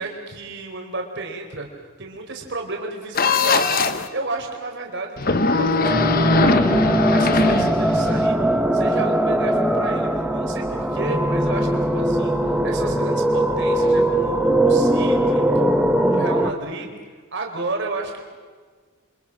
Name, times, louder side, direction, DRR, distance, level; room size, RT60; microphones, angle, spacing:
voice 1, 0.0-1.7 2.0-6.8 7.1-8.4 8.7-15.4 15.8-16.9 17.3-18.2, right 2 dB, 55° right, 2 dB, 4.3 m, -32 dB
sound 1, 3.1-4.1 5.2-8.3, left 3 dB, 45° left, 1.2 m, -20 dB
sound 2, 5.8-16.5, right 1 dB, 5° right, 1.1 m, -20 dB
29.0 x 26.0 x 6.1 m, 1.5 s
head